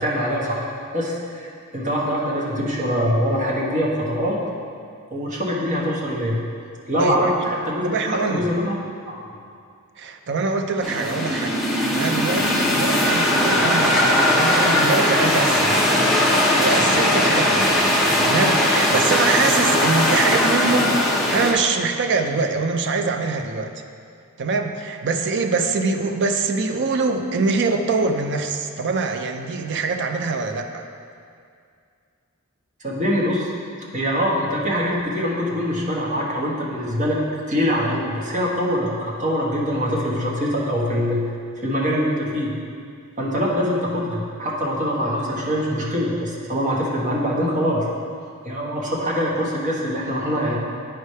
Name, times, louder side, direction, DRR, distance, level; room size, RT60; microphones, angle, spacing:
voice 1, 0.0-4.4 5.1-6.4 6.9-8.8 9.1-9.2 32.8-33.5 33.9-37.2 37.5-41.2 41.6-42.5 43.2-47.8 48.4-50.6, equal, 35° right, -4 dB, 1.1 m, -23 dB
voice 2, 7.0-7.3 7.8-8.4 10.0-16.0 16.2-17.9 18.2-23.7 24.4-30.9, right 4 dB, 55° right, 6 dB, 0.5 m, -24 dB
sound 1, 10.8-21.5, left 1 dB, ahead, 0.7 m, -19 dB
9.1 x 3.2 x 5.5 m, 2.3 s
head